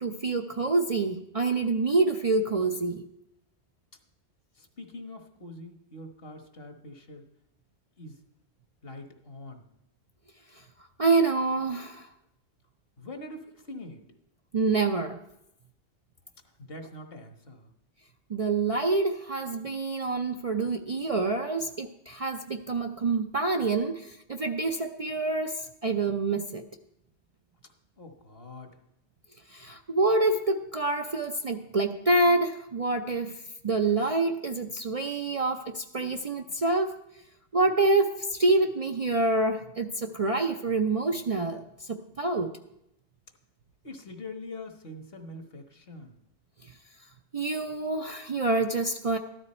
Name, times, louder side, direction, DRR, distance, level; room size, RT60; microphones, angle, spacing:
voice 1, 0.0-3.1 11.0-12.1 14.5-15.2 18.3-26.6 29.5-37.0 37.5-42.6 46.6-46.7 47.3-49.2, right 3 dB, 40° right, 4 dB, 0.5 m, -27 dB
voice 2, 4.5-7.2 8.0-8.2 8.8-9.7 13.0-14.0 16.4-17.7 28.0-28.7 43.8-46.2, left 2 dB, 60° left, 5 dB, 1.5 m, -44 dB
14.0 x 12.0 x 4.3 m, 0.83 s
omnidirectional pair, 1.1 m